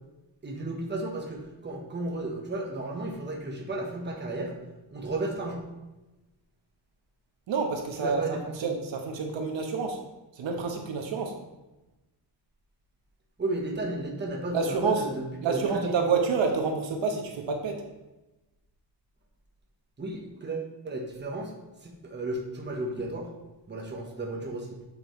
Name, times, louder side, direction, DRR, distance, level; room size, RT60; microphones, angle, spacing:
voice 1, 0.4-4.5 4.9-5.7 8.0-8.6 13.4-16.0 20.0-21.5 21.8-23.3 23.7-24.7, right 2 dB, 25° right, 0 dB, 1.3 m, -34 dB
voice 2, 7.5-8.2 8.6-10.0 10.4-11.3 14.5-15.0 15.4-17.8, right 5 dB, 85° right, 2 dB, 1.3 m, -28 dB
8.5 x 6.9 x 3.2 m, 1.0 s
wide cardioid pair, 170°, 44 cm